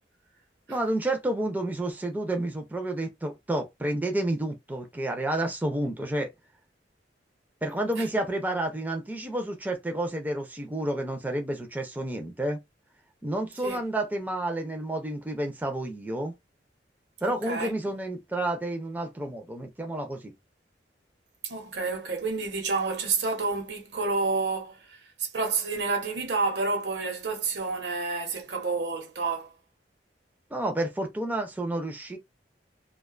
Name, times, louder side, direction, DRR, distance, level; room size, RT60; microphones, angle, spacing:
voice 1, 0.7-6.3 7.6-12.6 13.2-16.3 17.2-20.2 30.5-32.2, right 1 dB, 10° right, 0.4 m, -30 dB
voice 2, 17.2-17.7 21.4-29.5, right 4 dB, 75° right, 0.8 m, -29 dB
2.4 x 2.2 x 2.4 m
head